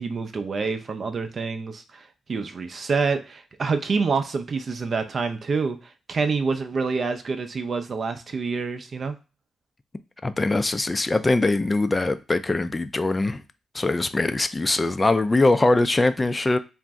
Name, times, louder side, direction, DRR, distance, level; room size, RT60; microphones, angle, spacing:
voice 1, 0.0-5.8 6.1-9.2, right 4 dB, 50° right, 0.5 m, -27 dB
voice 2, 10.2-13.4 13.7-16.6, left 2 dB, 25° left, 0.3 m, -22 dB
2.5 x 2.0 x 3.4 m
supercardioid pair, 50°, 0 cm